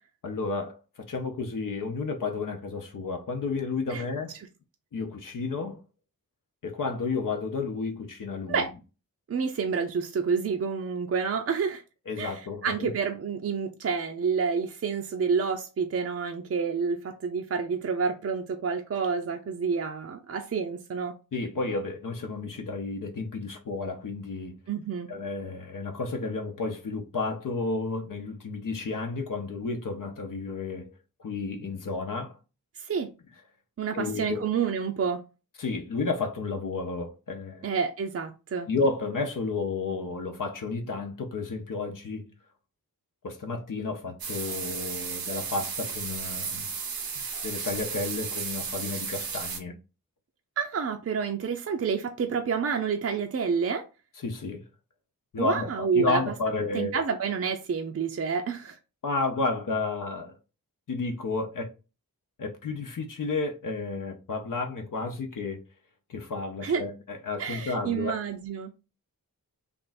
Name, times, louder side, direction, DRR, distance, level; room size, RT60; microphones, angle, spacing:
voice 1, 0.2-4.4 4.9-5.8 6.6-8.7 12.1-12.9 21.3-24.6 25.1-30.9 31.2-32.4 33.9-34.4 35.6-37.7 38.7-42.3 43.2-46.7 47.4-49.7 54.2-54.6 55.3-56.9 59.0-60.3 60.9-61.7 62.4-65.6 66.1-68.2, left 3 dB, 65° left, 0.7 m, -32 dB
voice 2, 9.3-11.8 12.2-21.1 24.7-25.1 32.8-33.1 33.8-35.2 37.6-38.7 50.6-53.8 55.4-56.3 56.7-58.8 66.6-66.8 67.4-68.7, right 6 dB, 45° right, 0.5 m, -29 dB
sound 1, 44.2-49.6, right 6 dB, 85° right, 0.8 m, -34 dB
3.4 x 2.5 x 4.0 m
wide cardioid pair, 75°, 34 cm